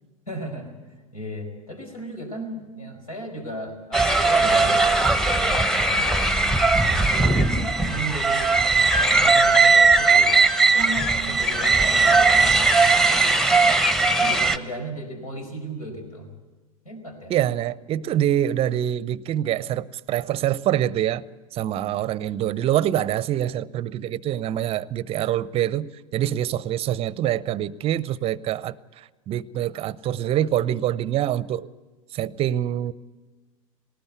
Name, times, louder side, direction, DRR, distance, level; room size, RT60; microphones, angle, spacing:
voice 1, 0.3-8.6 8.9-10.4 10.7-13.3 14.2-16.3 16.8-17.3, right 1 dB, 85° left, 5.0 m, -36 dB
sound 1, 3.9-14.6, right 3 dB, ahead, 1.0 m, -19 dB
voice 2, 17.3-21.2 21.5-31.7 32.1-32.9, right 11 dB, 30° right, 0.6 m, -25 dB
19.5 x 19.0 x 8.1 m
figure-of-eight pair, 90°, 18 cm